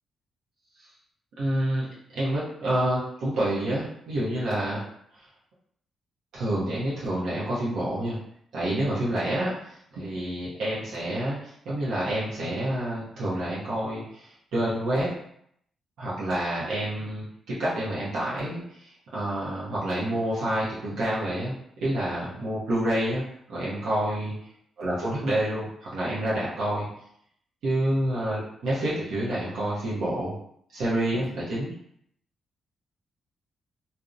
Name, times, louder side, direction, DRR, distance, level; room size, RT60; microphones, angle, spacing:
voice 1, 1.4-1.9 2.1-4.8 5.2-5.3 6.3-8.2 8.5-15.1 16.0-21.5 21.8-23.2 23.5-24.4 24.8-26.9 27.6-30.3 30.7-31.7, right 1 dB, 85° right, -8 dB, 0.7 m, -28 dB
2.6 x 2.0 x 2.4 m, 0.70 s
cardioid pair, 115°, 0 cm